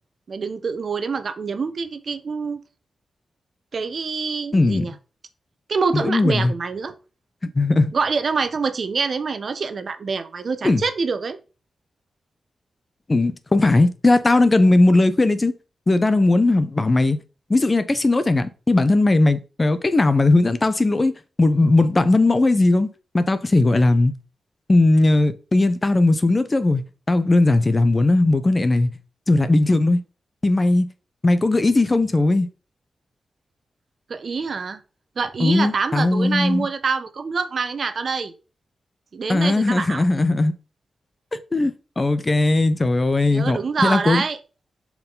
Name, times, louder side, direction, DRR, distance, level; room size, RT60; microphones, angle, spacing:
voice 1, 0.3-2.6 3.7-4.9 5.7-6.9 7.9-11.4 34.1-34.8 35.2-38.3 39.1-40.0 43.3-44.4, right 5 dB, 60° right, 0.9 m, -25 dB
voice 2, 4.5-4.9 5.9-6.5 7.5-7.9 10.6-10.8 13.1-15.5 15.9-17.2 17.5-24.1 24.7-28.9 29.3-30.0 30.4-30.9 31.2-32.5 35.4-36.7 39.3-40.5 41.3-44.2, left 2 dB, 30° left, 0.9 m, -18 dB
7.2 x 4.9 x 4.0 m
cardioid pair, 65°, 0 cm